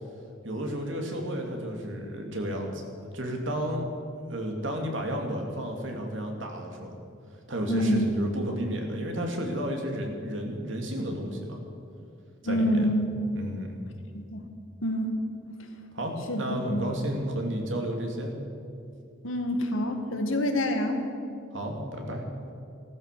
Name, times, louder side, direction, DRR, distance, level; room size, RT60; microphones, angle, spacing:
voice 1, 0.4-2.8 3.1-3.8 4.3-7.0 7.5-11.6 12.4-12.9 13.3-13.8 15.9-18.3 21.5-22.2, equal, 70° right, 2 dB, 2.6 m, -32 dB
voice 2, 7.7-8.1 12.4-13.1 14.1-14.4 14.8-15.1 16.3-16.8 19.2-21.0, equal, 90° left, 4 dB, 1.9 m, -27 dB
15.5 x 13.5 x 6.8 m, 2.5 s
head